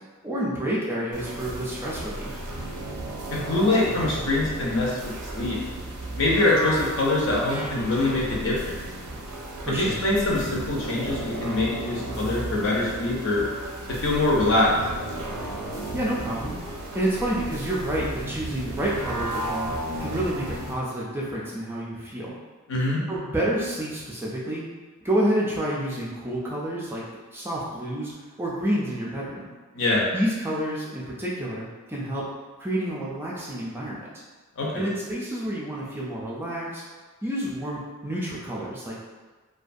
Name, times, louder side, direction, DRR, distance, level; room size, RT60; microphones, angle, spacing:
voice 1, 0.2-2.4 9.6-10.0 15.9-16.6 16.9-19.7 20.0-22.3 23.1-24.6 25.0-27.0 27.3-28.1 28.4-29.5 30.1-32.3 32.6-34.1 34.7-36.8 37.2-39.0, right 1 dB, 10° right, -6 dB, 0.3 m, -29 dB
sound 1, 1.1-20.7, right 1 dB, 80° right, 0.5 m, -34 dB
voice 2, 3.3-5.6 6.2-8.8 9.7-13.5 14.0-14.7 22.7-23.0 29.7-30.0 34.6-34.8, left 2 dB, 60° left, -4 dB, 0.6 m, -24 dB
2.4 x 2.2 x 2.5 m, 1.3 s
head